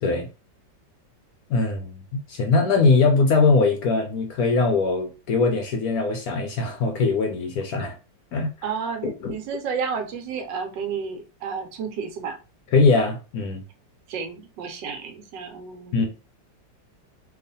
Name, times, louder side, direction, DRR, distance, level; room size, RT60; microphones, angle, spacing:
voice 1, 1.5-2.0 2.3-7.9 8.3-8.5 9.0-9.3 12.7-13.6 15.9-16.1, left 3 dB, 70° left, 0.9 m, -21 dB
voice 2, 8.6-12.4 14.1-16.1, right 6 dB, 80° right, 1.3 m, -31 dB
2.9 x 2.4 x 3.9 m
omnidirectional pair, 2.0 m